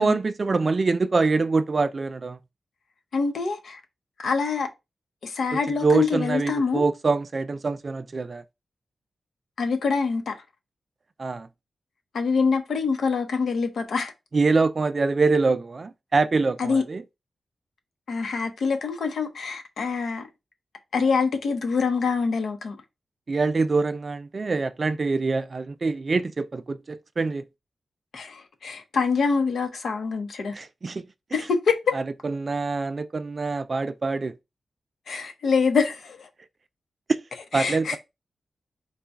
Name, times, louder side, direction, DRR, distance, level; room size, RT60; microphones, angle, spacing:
voice 1, 0.0-2.4 5.8-8.4 11.2-11.5 14.3-17.0 23.3-27.4 30.5-31.0 31.9-34.3 37.1-37.2 37.5-38.0, right 3 dB, 35° right, 0.3 m, -24 dB
voice 2, 3.1-3.8 4.2-4.7 5.2-6.8 9.6-10.3 12.1-14.1 16.6-16.8 18.1-20.3 20.9-22.8 28.1-30.5 31.3-32.0 35.1-36.3 37.5-38.0, left 5 dB, 70° left, 0.8 m, -25 dB
4.0 x 2.2 x 3.4 m
wide cardioid pair, 155°, 0 cm